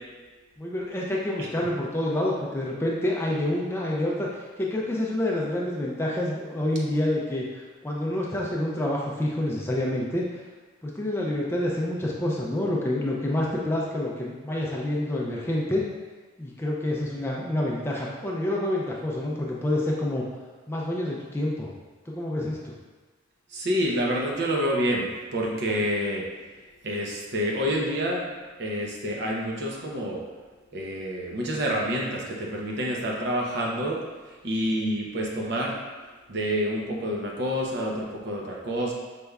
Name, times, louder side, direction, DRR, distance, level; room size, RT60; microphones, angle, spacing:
voice 1, 0.6-10.2 10.8-15.8 16.4-20.2 20.7-21.7 22.1-22.7, left 1 dB, 10° left, -3 dB, 0.4 m, -28 dB
voice 2, 23.5-26.2 26.8-28.3 28.6-30.2 30.7-34.0 34.4-35.7 36.3-38.9, equal, 55° right, -2 dB, 0.7 m, -28 dB
5.1 x 3.4 x 2.3 m, 1.3 s
head